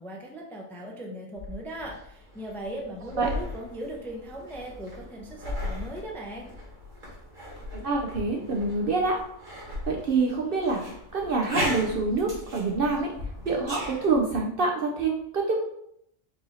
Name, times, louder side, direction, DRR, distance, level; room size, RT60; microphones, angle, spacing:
voice 1, 0.0-6.5, right 1 dB, ahead, -1 dB, 0.4 m, -38 dB
sound 1, 1.4-14.2, left 1 dB, 40° right, 1.7 m, -37 dB
voice 2, 7.7-9.2 9.9-13.1 13.5-15.6, right 3 dB, 55° right, 1 dB, 0.7 m, -26 dB
4.7 x 2.7 x 4.0 m, 0.72 s
omnidirectional pair, 1.3 m